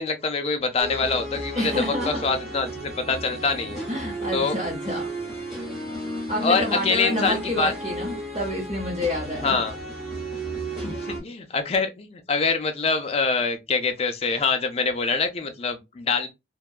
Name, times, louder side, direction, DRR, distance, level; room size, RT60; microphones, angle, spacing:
voice 1, 0.0-3.8 4.3-4.6 6.4-7.7 9.4-9.8 10.8-16.3, left 4 dB, 35° left, 0.4 m, -25 dB
sound 1, 0.8-11.2, right 1 dB, ahead, 0.9 m, -33 dB
voice 2, 1.5-2.3 3.9-5.1 6.3-9.6, left 1 dB, 30° right, 0.7 m, -28 dB
2.7 x 2.2 x 2.2 m
head